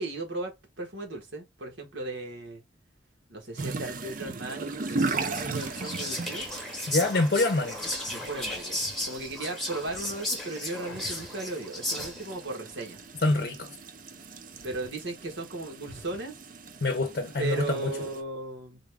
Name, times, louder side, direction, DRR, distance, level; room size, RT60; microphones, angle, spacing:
voice 1, 0.0-2.6 3.3-6.5 8.1-13.0 14.6-16.4 17.4-18.8, right 2 dB, 85° right, 1.4 m, -36 dB
sound 1, 3.6-18.2, right 3 dB, 45° right, 0.5 m, -38 dB
Whispering, 4.8-12.4, left 1 dB, ahead, 0.9 m, -35 dB
voice 2, 6.9-7.8 13.2-13.8 16.8-17.9, left 2 dB, 55° left, 0.6 m, -26 dB
sound 2, 7.7-8.2 8.7-9.1 9.8-10.2 10.8-11.6 11.9-12.4 13.1-13.5 14.2-15.0 15.2-15.3 15.8-16.3, right 1 dB, 70° right, 1.4 m, -51 dB
3.9 x 2.4 x 3.3 m
head